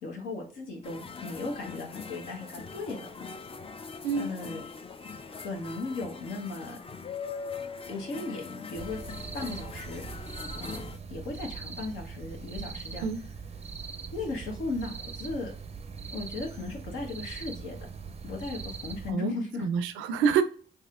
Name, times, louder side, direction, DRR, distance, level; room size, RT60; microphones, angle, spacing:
voice 1, 0.0-3.1 4.1-4.6 5.3-6.8 7.9-9.0 9.3-10.0 10.5-10.8 11.1-13.0 14.1-15.5 16.1-17.8 18.2-19.7, left 3 dB, 80° left, 0 dB, 1.1 m, -36 dB
sound 1, 0.8-11.0, left 5 dB, 30° left, 0.4 m, -42 dB
sound 2, 8.7-19.1, right 5 dB, 30° right, 0.5 m, -41 dB
voice 2, 19.6-20.4, right 6 dB, 90° right, 11 dB, 0.4 m, -26 dB
4.2 x 2.8 x 2.4 m, 0.43 s
supercardioid pair, 50°, 20 cm